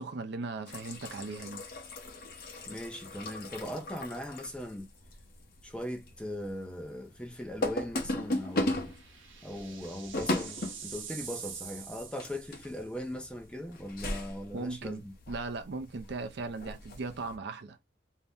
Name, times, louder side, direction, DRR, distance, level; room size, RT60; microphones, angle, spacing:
voice 1, 0.0-1.6 14.5-17.8, right 3 dB, 60° right, 0.5 m, -38 dB
sound 1, 0.7-17.4, left 1 dB, 50° left, 0.8 m, -38 dB
voice 2, 2.6-4.9 5.6-8.9 9.4-15.1, equal, 5° left, 0.5 m, -39 dB
sound 2, 6.1-6.5 6.8-6.9 8.3-13.0, right 7 dB, 85° right, 0.8 m, -46 dB
2.6 x 2.1 x 3.4 m
head